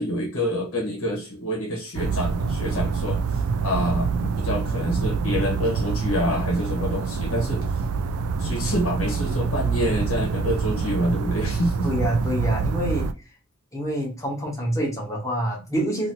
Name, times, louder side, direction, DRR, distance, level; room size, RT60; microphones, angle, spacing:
voice 1, 0.0-7.6 8.4-11.9, equal, 65° left, -1 dB, 1.1 m, -27 dB
sound 1, 1.9-13.1, right 5 dB, 75° right, 0.3 m, -26 dB
voice 2, 11.8-13.1 13.7-16.1, equal, 15° left, -2 dB, 1.1 m, -26 dB
2.7 x 2.7 x 2.8 m, 0.33 s
head